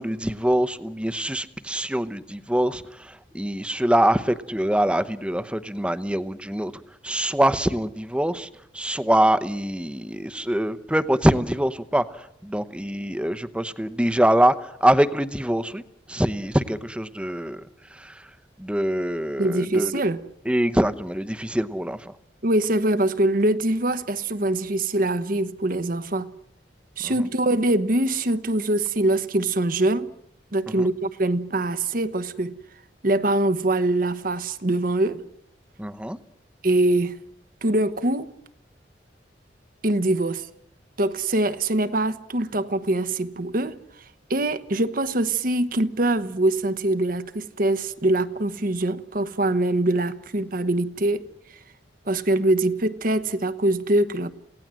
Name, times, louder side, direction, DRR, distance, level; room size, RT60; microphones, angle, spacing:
voice 1, 0.0-15.8 16.1-20.0 20.4-22.2 27.0-27.3 30.7-30.9 35.8-36.2, right 1 dB, 5° right, 0.9 m, -24 dB
voice 2, 19.4-20.2 22.4-26.3 27.0-30.1 30.5-32.6 33.0-35.2 36.6-37.2 37.6-38.3 39.8-40.5 41.0-43.8 44.3-51.3 52.1-54.3, right 1 dB, 50° right, 1.1 m, -23 dB
27.5 x 17.5 x 7.6 m
head